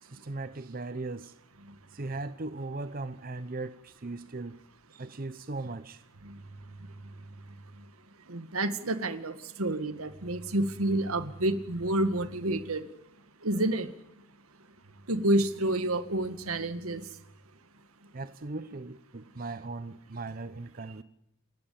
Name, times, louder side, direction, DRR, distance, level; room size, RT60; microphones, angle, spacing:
voice 1, 0.0-1.4 1.9-4.6 4.9-6.0 18.1-21.0, right 3 dB, 40° right, 0.8 m, -38 dB
voice 2, 8.3-12.8 13.4-13.9 15.1-17.1, right 1 dB, 85° right, 2.0 m, -29 dB
29.0 x 13.5 x 8.7 m
head